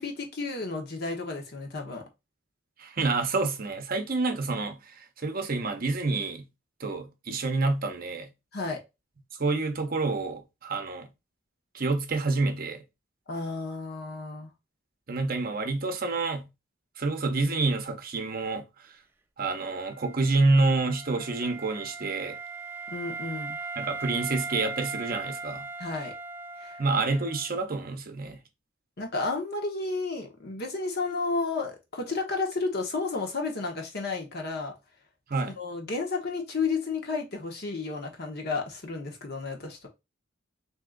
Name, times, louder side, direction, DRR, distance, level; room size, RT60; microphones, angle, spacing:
voice 1, 0.0-2.0 8.5-8.8 13.3-14.5 22.9-23.6 25.8-26.1 26.6-26.8 29.0-34.7 35.4-39.9, left 3 dB, 50° left, 1.0 m, -32 dB
voice 2, 2.8-4.8 5.2-6.4 6.8-8.3 9.4-11.1 11.7-12.8 15.1-16.5 17.0-18.6 19.4-22.4 23.8-25.7 26.8-28.4 35.3-35.5, right 3 dB, 45° right, 0.7 m, -28 dB
Wind instrument woodwind instrument, 19.8-27.6, right 4 dB, 10° right, 0.4 m, -39 dB
3.6 x 2.8 x 3.7 m
head